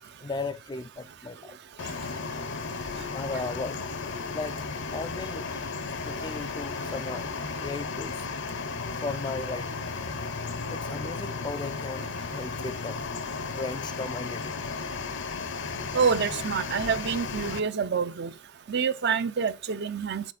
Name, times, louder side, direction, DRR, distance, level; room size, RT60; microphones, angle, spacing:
voice 1, 0.2-1.6 2.8-3.8 4.3-4.6 4.9-7.3 7.6-8.3 9.0-9.8 10.7-13.0 13.4-14.5, left 3 dB, 20° left, 0.3 m, -36 dB
sound 1, 1.8-17.6, left 4 dB, 55° left, 0.6 m, -34 dB
voice 2, 15.9-18.3 18.7-20.3, right 6 dB, 50° right, 0.5 m, -27 dB
7.2 x 4.2 x 4.0 m
head